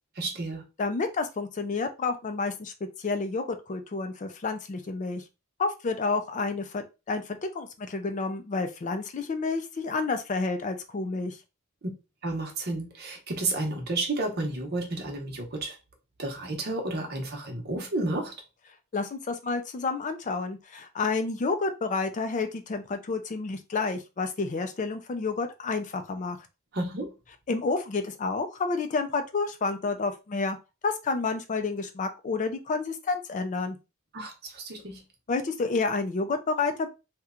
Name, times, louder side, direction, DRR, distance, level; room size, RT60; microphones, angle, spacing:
voice 1, 0.2-0.6 11.8-11.9 12.2-15.8 16.2-18.3 26.7-27.1 34.1-35.0, right 2 dB, 50° right, 0.9 m, -31 dB
voice 2, 0.8-5.2 5.6-11.4 18.9-26.4 27.5-30.6 30.8-33.8 35.3-36.9, left 3 dB, 35° left, 0.4 m, -30 dB
2.9 x 2.2 x 3.6 m
head